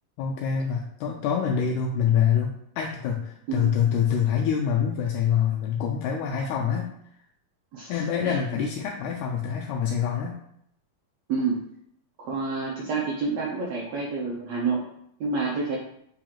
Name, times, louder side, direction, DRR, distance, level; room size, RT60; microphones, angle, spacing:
voice 1, 0.2-6.9 7.9-10.4, left 8 dB, 85° left, 0 dB, 1.7 m, -25 dB
voice 2, 7.7-8.4 11.3-11.6 12.2-14.8 15.2-15.8, right 4 dB, 80° right, -3 dB, 1.5 m, -28 dB
7.3 x 2.9 x 2.4 m, 0.72 s
omnidirectional pair, 3.9 m